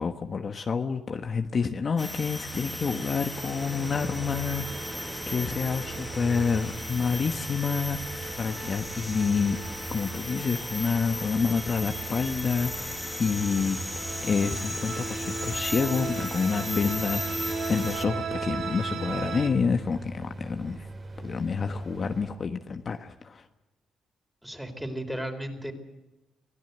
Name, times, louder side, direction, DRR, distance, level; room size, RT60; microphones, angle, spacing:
voice 1, 0.0-13.8 14.2-17.4 17.7-20.9 21.2-23.5, left 5 dB, 45° left, 6 dB, 1.3 m, -28 dB
sound 1, 2.0-18.0, left 2 dB, 10° left, 1.6 m, -37 dB
sound 2, 2.1-19.5, right 4 dB, 70° right, 3.9 m, -38 dB
sound 3, 3.3-22.3, right 2 dB, 35° right, 4.4 m, -42 dB
voice 2, 24.4-25.7, right 1 dB, 5° right, 6 dB, 4.0 m, -34 dB
25.0 x 16.5 x 8.1 m, 1.1 s
cardioid pair, 90°, 0 cm